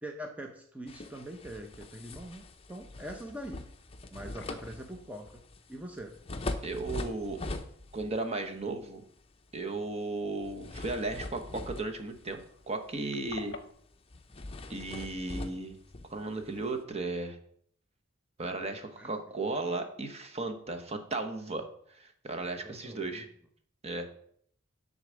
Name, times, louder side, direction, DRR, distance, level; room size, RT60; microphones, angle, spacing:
voice 1, 0.0-3.7 4.1-5.4 5.7-6.1 19.0-19.1 22.6-23.2, right 1 dB, 5° right, 3 dB, 0.7 m, -43 dB
sound 1, 0.9-8.2 8.6-8.8 10.4-12.6 13.0-13.2 13.5-13.6 14.1-16.8, left 2 dB, 30° left, 0.7 m, -42 dB
sound 2, 4.3-5.0 5.3-5.4 7.8-8.0 8.9-9.0 9.2-9.3 11.7-11.8 12.0-12.1 12.4-13.7, left 3 dB, 60° left, 0.8 m, -47 dB
voice 2, 6.6-7.4 7.9-9.0 9.5-13.6 14.7-15.8 16.1-17.4 18.4-21.7 22.0-23.3 23.8-24.1, right 2 dB, 30° right, 6 dB, 1.0 m, -35 dB
10.0 x 3.9 x 6.3 m, 0.64 s
head